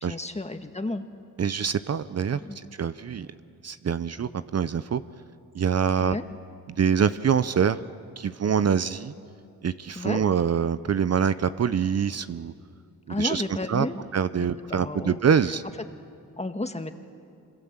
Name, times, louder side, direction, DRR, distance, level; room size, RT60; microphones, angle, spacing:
voice 1, 0.0-1.0 2.3-2.6 6.0-6.2 9.9-10.2 13.1-14.0 14.7-15.2 16.4-16.9, left 2 dB, 20° left, 7 dB, 1.7 m, -32 dB
voice 2, 1.4-3.3 3.6-5.0 5.5-6.2 6.8-7.8 8.2-9.1 9.6-12.5 13.1-13.4 13.7-13.9 14.1-15.6, right 7 dB, 45° right, 13 dB, 0.8 m, -25 dB
25.5 x 25.5 x 7.5 m, 2.4 s
cardioid pair, 70°, 34 cm